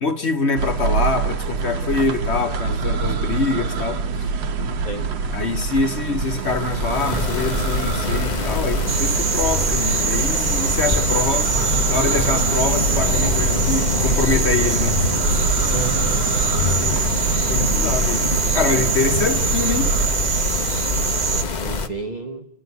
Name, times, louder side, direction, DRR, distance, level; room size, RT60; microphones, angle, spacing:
voice 1, 0.0-4.3 4.6-4.7 5.3-11.5 11.9-15.0 16.5-18.2 18.5-19.9, left 4 dB, 45° left, 0.9 m, -25 dB
sound 1, 0.6-20.1, right 4 dB, 70° right, 1.7 m, -26 dB
sound 2, 6.2-21.9, left 4 dB, 85° left, 0.4 m, -25 dB
sound 3, 8.9-21.4, right 7 dB, 50° right, 1.1 m, -24 dB
voice 2, 15.7-16.2 18.7-18.9 20.8-22.5, right 2 dB, 30° right, 0.8 m, -33 dB
28.0 x 9.8 x 9.4 m
omnidirectional pair, 2.1 m